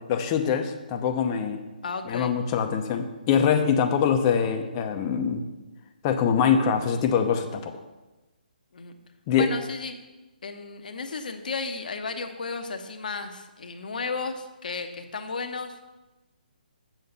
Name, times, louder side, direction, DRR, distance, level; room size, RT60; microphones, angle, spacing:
voice 1, 0.1-1.6 2.1-5.4 6.0-7.7 9.3-9.5, left 7 dB, 25° left, 6 dB, 0.7 m, -24 dB
voice 2, 1.8-2.4 8.7-9.0 9.3-10.0 10.4-15.8, left 4 dB, 60° left, 6 dB, 0.9 m, -34 dB
7.3 x 5.6 x 5.4 m, 1.1 s
figure-of-eight pair, 140°, 5 cm